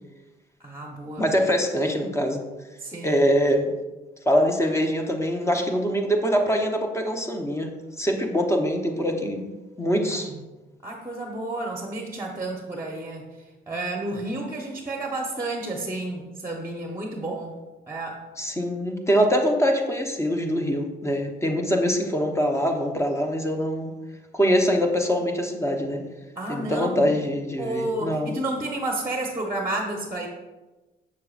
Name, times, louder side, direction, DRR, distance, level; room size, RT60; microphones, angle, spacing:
voice 1, 0.6-1.3 2.8-3.2 10.1-10.4 10.8-13.2 13.7-17.6 17.9-18.2 26.4-27.2 27.6-30.3, right 2 dB, 15° right, 1 dB, 0.9 m, -31 dB
voice 2, 1.2-2.4 3.0-3.7 4.3-7.7 8.0-9.4 9.8-10.3 18.4-23.9 24.3-26.0 26.5-28.4, equal, 15° left, 3 dB, 0.9 m, -23 dB
7.0 x 6.5 x 2.4 m, 1.1 s
cardioid pair, 90°, 20 cm